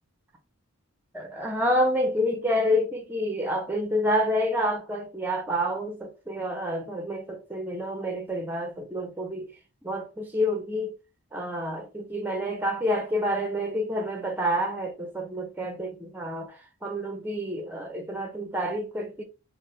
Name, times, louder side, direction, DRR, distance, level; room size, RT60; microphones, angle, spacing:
voice 1, 1.1-9.5 9.8-10.9 11.3-19.2, equal, 10° right, 0.5 m, -28 dB
3.3 x 2.0 x 2.7 m
head